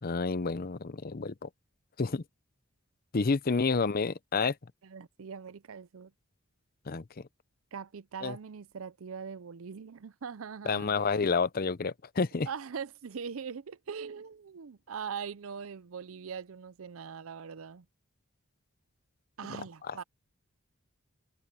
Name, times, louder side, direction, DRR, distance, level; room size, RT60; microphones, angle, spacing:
voice 1, 0.0-1.5 2.0-2.2 3.1-4.6 6.9-7.3 8.2-8.4 10.6-12.5 19.8-20.0, left 4 dB, 45° left, 0.6 m, -29 dB
voice 2, 4.8-6.1 7.7-11.3 12.5-17.9 19.4-20.0, right 6 dB, 70° right, 0.5 m, -41 dB
head